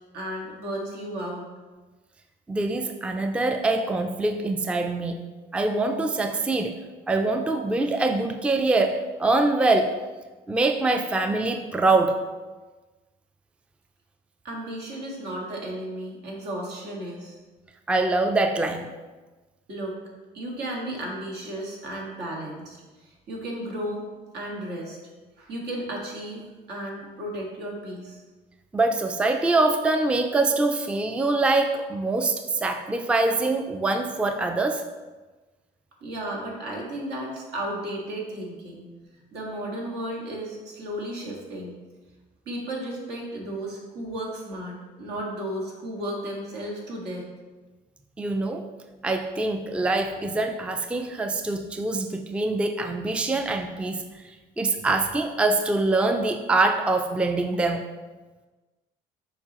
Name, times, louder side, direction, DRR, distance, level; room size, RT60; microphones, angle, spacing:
voice 1, 0.1-1.5 14.4-17.4 19.7-20.0 20.3-22.8 23.3-24.0 24.3-25.0 25.4-26.4 26.7-28.2 36.0-38.8 39.3-41.8 42.4-47.3, right 1 dB, 75° right, -2 dB, 1.7 m, -34 dB
voice 2, 2.5-5.2 5.5-6.8 7.1-10.0 10.5-12.2 17.9-18.9 28.7-34.8 48.2-48.7 49.0-57.9, right 2 dB, 5° right, 6 dB, 0.4 m, -24 dB
7.0 x 4.8 x 2.9 m, 1.2 s
cardioid pair, 110°, 17 cm